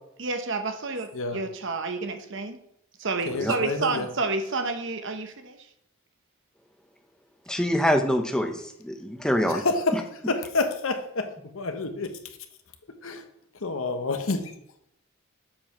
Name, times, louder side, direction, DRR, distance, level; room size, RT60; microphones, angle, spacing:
voice 1, 0.2-2.6 3.0-5.6, right 3 dB, 55° right, 7 dB, 0.9 m, -30 dB
voice 2, 3.3-4.1 9.5-12.2 13.0-13.2 13.6-14.5, left 3 dB, 65° left, 7 dB, 1.0 m, -29 dB
voice 3, 7.5-9.6 9.9-10.0, equal, 5° left, 5 dB, 0.7 m, -25 dB
7.5 x 4.6 x 5.8 m, 0.75 s
head